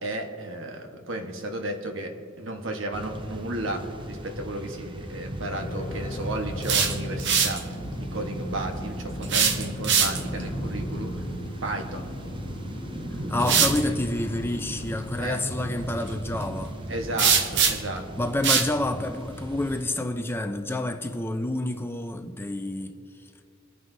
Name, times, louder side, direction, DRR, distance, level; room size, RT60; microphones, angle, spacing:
voice 1, 0.0-7.7 8.0-11.2 11.6-12.1 15.2-15.4 16.9-18.1, right 1 dB, 85° right, 1.3 m, -33 dB
sound 1, 2.9-19.8, right 1 dB, 25° right, 0.8 m, -36 dB
sound 2, 5.6-15.8, left 1 dB, 40° left, 1.1 m, -38 dB
sound 3, 6.4-7.6 9.2-10.4 12.5-12.6 13.4-13.8 17.2-18.0 18.4-18.7, right 6 dB, 65° right, 0.8 m, -22 dB
voice 2, 13.3-16.8 18.2-22.9, left 1 dB, 10° left, 0.6 m, -28 dB
22.0 x 9.4 x 2.7 m
head